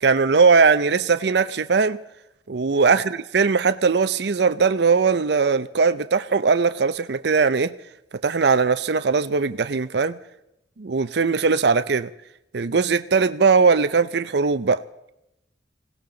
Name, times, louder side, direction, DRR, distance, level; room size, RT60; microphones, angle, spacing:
voice 1, 0.0-2.0 2.5-7.7 8.2-10.2 10.8-12.1 12.5-14.8, right 5 dB, 60° right, 0.5 m, -19 dB
21.5 x 17.0 x 3.9 m
head